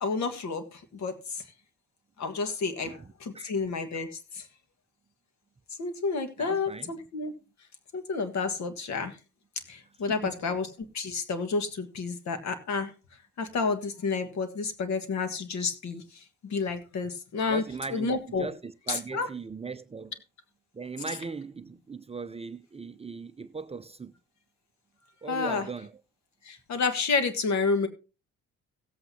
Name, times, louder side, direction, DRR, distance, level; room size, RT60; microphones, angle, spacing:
voice 1, 0.0-1.4 2.2-4.5 5.8-7.3 7.9-9.2 9.7-10.7 10.9-12.9 13.4-17.6 17.9-18.5 18.9-19.3 21.1-21.2 25.3-25.7 26.4-27.9, left 4 dB, 65° left, 1.7 m, -30 dB
voice 2, 2.8-3.5 6.4-6.9 10.1-10.3 17.5-20.1 20.7-24.1 25.2-26.0, right 4 dB, 20° right, 0.5 m, -39 dB
17.0 x 8.1 x 2.8 m
cardioid pair, 90°, 30 cm